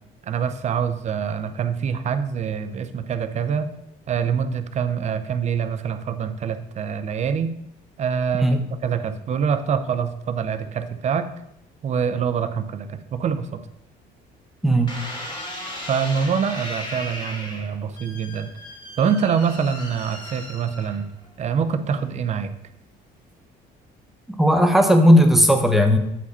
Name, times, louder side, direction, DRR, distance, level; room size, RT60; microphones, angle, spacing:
voice 1, 0.2-3.7 4.1-7.5 8.0-11.3 11.8-13.6 15.9-18.5 19.0-21.1 21.4-22.5, right 7 dB, 45° right, 10 dB, 0.6 m, -25 dB
sound 1, 14.9-21.3 21.9-22.4, left 1 dB, 25° left, 2.2 m, -36 dB
voice 2, 24.4-26.0, equal, ahead, 4 dB, 0.9 m, -15 dB
8.0 x 4.9 x 4.2 m, 0.81 s
cardioid pair, 110°, 17 cm